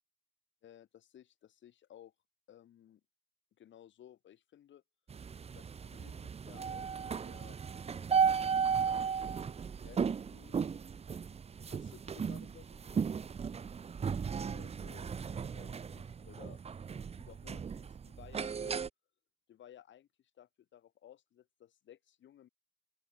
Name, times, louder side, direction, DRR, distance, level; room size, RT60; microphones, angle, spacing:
voice 1, 0.6-2.1 2.5-3.0 3.6-4.8 5.5-8.7 9.7-10.6 11.6-13.2 14.3-16.6 17.2-18.8 19.5-20.1 20.4-22.5, left 11 dB, 70° left, 5.8 m, -58 dB
sound 1, 5.1-18.9, right 6 dB, 30° right, 0.7 m, -35 dB
open air
cardioid pair, 90°, 20 cm